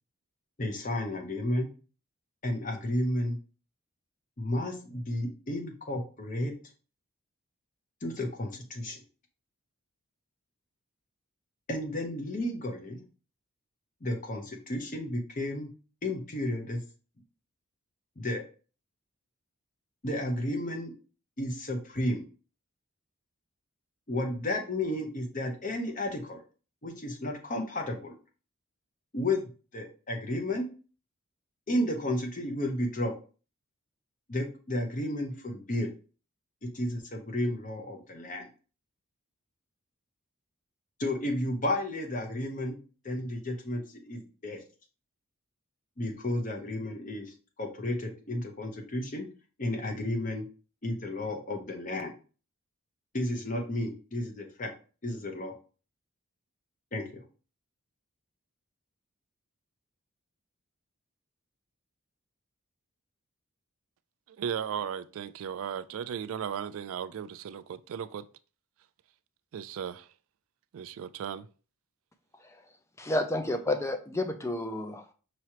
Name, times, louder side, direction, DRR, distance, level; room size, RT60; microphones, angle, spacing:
voice 1, 0.6-1.7 2.4-3.4 4.4-6.5 8.0-9.0 11.7-13.0 14.0-15.7 16.0-16.8 18.2-18.4 20.0-20.9 21.4-22.2 24.1-26.4 26.8-28.2 29.1-30.7 31.7-33.1 34.3-35.9 36.7-38.5 41.0-42.8 43.0-44.6 46.0-49.2 49.6-50.4 50.8-52.1 53.1-54.7 55.0-55.5 56.9-57.2, left 1 dB, 35° left, 0.8 m, -32 dB
voice 2, 64.4-68.3 69.5-70.1 70.7-71.5, right 8 dB, 70° right, 0.3 m, -36 dB
voice 3, 73.0-75.1, left 1 dB, 10° left, 0.4 m, -31 dB
5.8 x 3.0 x 2.9 m
head